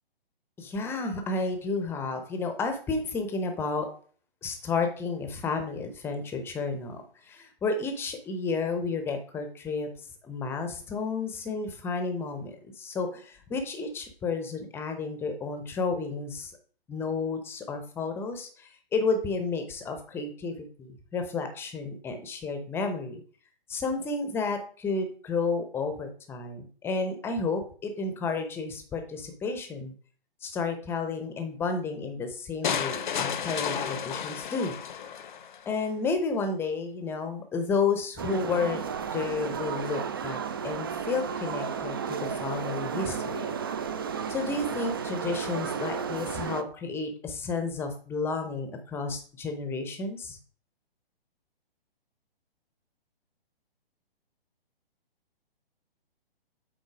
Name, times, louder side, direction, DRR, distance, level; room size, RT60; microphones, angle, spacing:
voice 1, 0.6-3.9 4.4-9.9 10.2-16.5 16.9-23.2 23.7-29.9 30.4-34.7 35.7-38.8 39.1-43.5 44.3-50.4, left 4 dB, 10° left, 6 dB, 0.7 m, -31 dB
sound 1, 32.6-35.6, left 8 dB, 55° left, 0.7 m, -32 dB
sound 2, 38.2-46.6, right 6 dB, 25° right, 0.3 m, -33 dB
8.2 x 3.8 x 4.9 m, 0.43 s
figure-of-eight pair, 130°, 30 cm